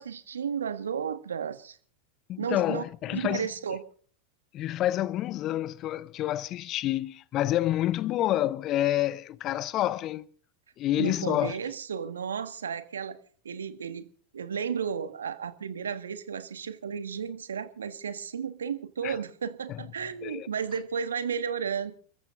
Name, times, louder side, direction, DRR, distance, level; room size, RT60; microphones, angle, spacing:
voice 1, 0.0-1.8 2.4-2.8 3.1-3.8 10.9-13.2 13.4-14.1 14.3-21.9, right 7 dB, 75° right, 1.6 m, -33 dB
voice 2, 2.3-3.5 4.5-10.3 10.8-11.6 19.0-19.2 19.7-19.8 20.2-20.5, left 13 dB, 40° left, 0.8 m, -28 dB
29.0 x 14.5 x 2.6 m
figure-of-eight pair, 85°, 0 cm